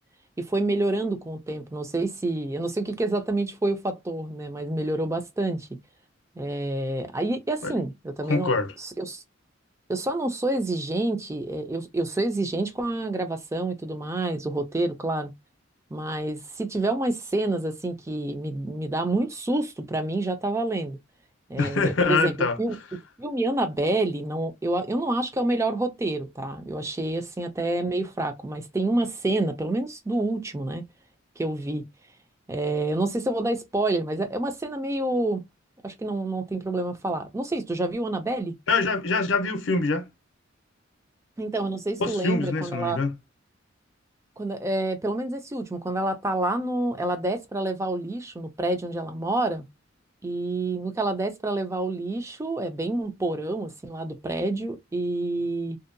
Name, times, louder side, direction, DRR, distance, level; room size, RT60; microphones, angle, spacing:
voice 1, 0.4-5.7 6.4-9.2 9.9-15.3 15.9-21.0 21.5-22.3 22.6-22.8 23.2-30.8 31.4-31.8 32.5-35.4 35.8-38.6 41.4-43.0 44.4-49.6 50.2-55.8, right 2 dB, 15° right, 0.4 m, -28 dB
voice 2, 8.3-8.7 21.6-22.6 38.7-40.1 42.0-43.1, left 3 dB, 70° left, 0.5 m, -24 dB
2.6 x 2.1 x 2.5 m
head